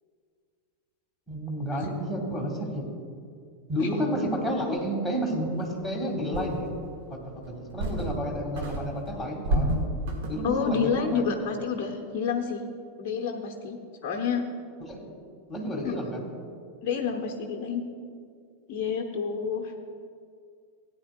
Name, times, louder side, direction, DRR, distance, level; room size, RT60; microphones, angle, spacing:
voice 1, 1.3-2.9 3.7-6.7 7.1-9.9 10.3-11.4 14.8-15.1 15.5-16.3, equal, ahead, -3 dB, 1.9 m, -31 dB
sound 1, 5.7-5.8 6.3-6.9 7.4-8.3 8.6-10.6, right 1 dB, 50° right, 1.4 m, -30 dB
voice 2, 10.4-12.6 13.0-14.4 15.8-15.9 16.8-17.8 18.7-19.7, left 6 dB, 40° left, 2 dB, 0.8 m, -29 dB
17.0 x 9.5 x 2.3 m, 2.3 s
figure-of-eight pair, 90°, 0 cm